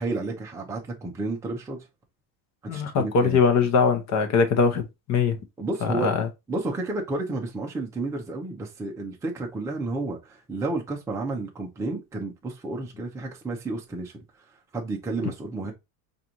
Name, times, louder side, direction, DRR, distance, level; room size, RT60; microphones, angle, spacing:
voice 1, 0.0-1.8 2.6-3.4 5.6-6.1 6.5-14.2 14.7-15.7, right 2 dB, 5° right, 0.4 m, -31 dB
voice 2, 2.7-5.4 5.8-6.3, left 5 dB, 35° left, 0.7 m, -22 dB
4.8 x 2.6 x 2.8 m
cardioid pair, 145°, 50 cm